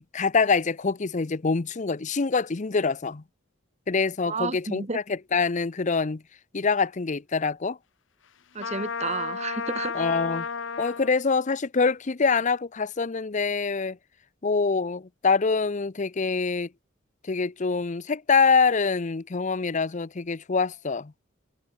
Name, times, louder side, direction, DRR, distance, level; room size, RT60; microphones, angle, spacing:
voice 1, 0.0-3.2 3.9-6.2 6.5-7.8 9.9-10.5 10.8-14.0 14.4-16.7 17.3-21.1, left 4 dB, 40° left, 0.6 m, -25 dB
voice 2, 4.2-5.0 8.5-10.0, right 4 dB, 35° right, 1.5 m, -31 dB
Trumpet, 8.6-11.1, left 5 dB, 70° left, 0.9 m, -32 dB
head